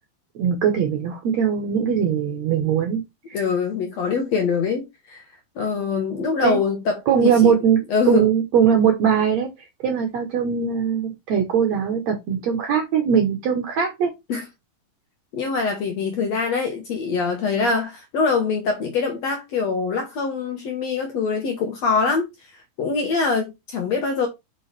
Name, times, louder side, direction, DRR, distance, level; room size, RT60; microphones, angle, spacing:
voice 1, 0.4-3.0 3.3-3.4 6.4-6.6 7.1-14.1, right 7 dB, 70° right, 1.7 m, -21 dB
voice 2, 3.3-5.2 5.6-7.5 7.9-8.3 14.3-14.4 15.3-22.3 22.8-24.3, left 4 dB, 65° left, 1.8 m, -24 dB
5.7 x 5.4 x 3.3 m
omnidirectional pair, 4.3 m